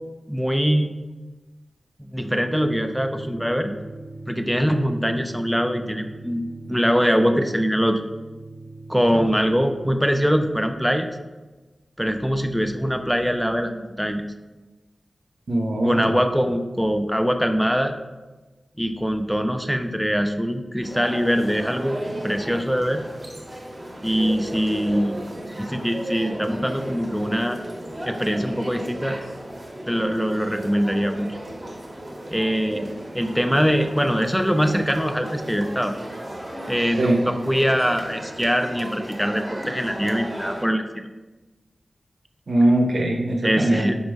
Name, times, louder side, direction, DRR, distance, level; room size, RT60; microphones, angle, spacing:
voice 1, 0.3-0.9 2.0-3.7 4.3-8.0 8.9-11.1 12.0-14.2 15.9-18.0 18.8-22.0 22.2-23.0 24.0-27.6 28.1-29.2 29.9-31.4 32.3-32.9 33.1-35.9 36.7-40.9 43.4-43.9, equal, ahead, 6 dB, 0.3 m, -23 dB
sound 1, 2.2-9.9, right 2 dB, 45° left, 0.8 m, -40 dB
voice 2, 15.5-16.1 37.0-37.2 42.5-44.0, right 1 dB, 70° right, 0 dB, 0.6 m, -20 dB
sound 2, 20.8-40.6, right 1 dB, 25° right, 0.7 m, -35 dB
5.2 x 2.1 x 4.7 m, 1.2 s
wide cardioid pair, 110°, 0 cm